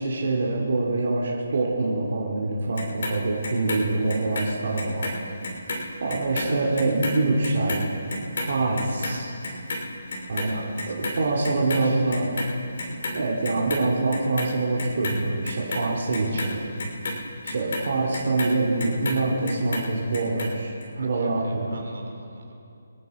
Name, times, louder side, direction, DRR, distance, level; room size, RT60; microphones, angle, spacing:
voice 1, 0.0-5.1 6.0-7.9 8.4-9.3 10.3-10.6 10.9-12.4 13.1-16.6 17.4-21.8, right 2 dB, 55° right, -3 dB, 2.4 m, -25 dB
Clock, 2.8-5.2 5.4-11.8 12.1-13.2 13.4-14.5 14.8-19.2 19.5-20.5 20.8-20.9, left 2 dB, 55° left, 2.9 m, -32 dB
voice 2, 10.5-10.9 11.2-11.3 11.7-12.1 20.9-22.6, right 3 dB, 80° right, 2 dB, 3.2 m, -46 dB
25.0 x 9.3 x 4.8 m, 2.5 s
hypercardioid pair, 170°, 0 cm